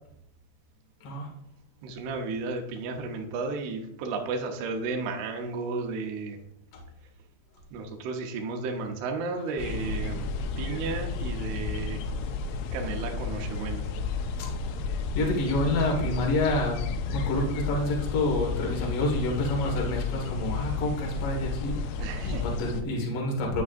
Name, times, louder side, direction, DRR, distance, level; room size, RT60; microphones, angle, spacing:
voice 1, 1.8-6.4 7.7-12.0 12.7-13.9 22.0-22.4, right 4 dB, 75° right, 2 dB, 2.6 m, -33 dB
sound 1, 9.6-22.8, left 4 dB, 85° left, 3.0 m, -32 dB
voice 2, 15.1-21.9 22.2-23.6, left 1 dB, 55° left, 0 dB, 1.6 m, -28 dB
9.4 x 8.4 x 2.6 m, 0.77 s
omnidirectional pair, 5.4 m